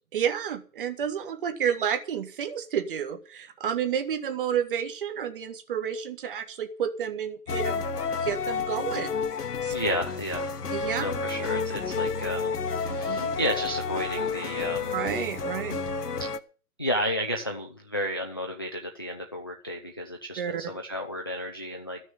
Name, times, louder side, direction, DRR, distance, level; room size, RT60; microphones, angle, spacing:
voice 1, 0.1-7.8 8.2-9.1 9.4-9.7 10.7-11.1 12.9-13.3 14.9-15.8 20.4-20.6, right 8 dB, 35° right, 8 dB, 1.7 m, -30 dB
sound 1, 7.5-16.4, left 5 dB, 75° left, 1.3 m, -30 dB
voice 2, 9.7-10.5 11.0-15.0 16.2-16.3 16.8-22.0, equal, 15° left, 3 dB, 0.5 m, -32 dB
14.0 x 6.4 x 9.3 m, 0.40 s
figure-of-eight pair, 150°, 47 cm